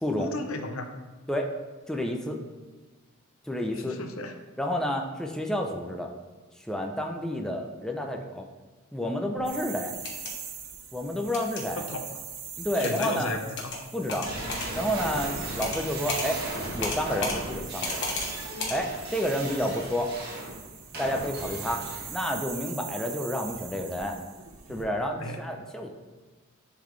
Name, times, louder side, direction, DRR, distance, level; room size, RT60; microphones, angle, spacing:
voice 1, 0.2-0.9 3.7-4.3 11.9-12.1 12.8-13.7 25.2-25.4, left 2 dB, 85° left, 5 dB, 0.8 m, -34 dB
voice 2, 1.9-2.4 3.4-4.0 4.6-6.1 6.6-8.5 8.9-10.0 10.9-11.9 12.6-13.3 13.9-14.3 14.7-16.4 16.7-18.0 18.7-20.1 21.0-21.8 22.1-24.2 24.7-25.9, equal, 5° left, 2 dB, 0.5 m, -30 dB
sound 1, 9.4-24.8, right 7 dB, 85° right, 0.9 m, -41 dB
sound 2, 9.9-10.3 11.3-11.6 12.8-13.1 13.6-13.8 14.1-14.7 15.6-16.3 16.8-17.4 17.8-18.3 18.6-18.8, left 3 dB, 60° left, 1.2 m, -32 dB
sound 3, 14.2-22.4, right 1 dB, 50° right, 2.0 m, -37 dB
10.5 x 4.0 x 3.2 m, 1.3 s
head